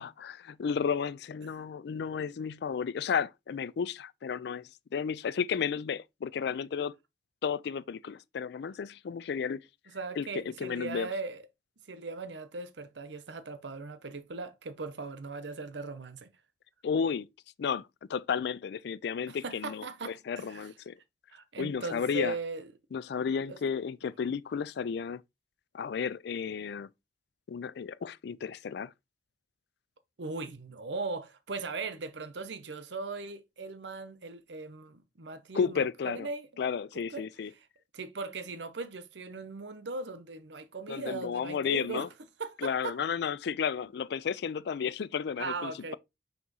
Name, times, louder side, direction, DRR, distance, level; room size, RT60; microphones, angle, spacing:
voice 1, 0.0-4.6 4.9-6.9 7.4-9.6 10.2-11.1 16.8-17.3 17.6-20.9 21.6-22.4 22.9-25.2 25.7-26.9 27.5-28.9 35.5-36.3 36.6-37.5 40.9-42.1 42.6-46.0, left 6 dB, 65° left, 0.4 m, -33 dB
voice 2, 9.9-11.4 11.9-16.3 19.3-20.7 21.3-22.7 23.5-23.6 30.2-36.5 37.1-37.3 37.5-37.7 37.9-42.1 42.4-43.0 45.4-46.0, right 3 dB, 85° right, 0.8 m, -39 dB
6.1 x 2.9 x 5.4 m
head